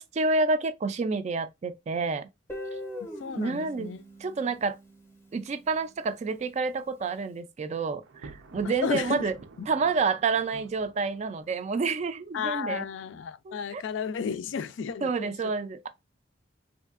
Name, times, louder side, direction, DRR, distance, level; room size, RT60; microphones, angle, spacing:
voice 1, 0.0-2.3 3.4-3.9 4.2-4.8 5.3-9.3 9.7-12.8 13.5-13.8 15.0-15.9, right 4 dB, 35° right, 0.3 m, -29 dB
Guitar, 2.5-5.4, left 1 dB, 15° left, 0.7 m, -41 dB
voice 2, 3.2-4.0 8.6-9.3 12.3-15.3, left 6 dB, 75° left, 0.3 m, -33 dB
Thunder, 8.0-12.1, right 3 dB, 90° right, 0.5 m, -50 dB
3.1 x 2.6 x 2.4 m
head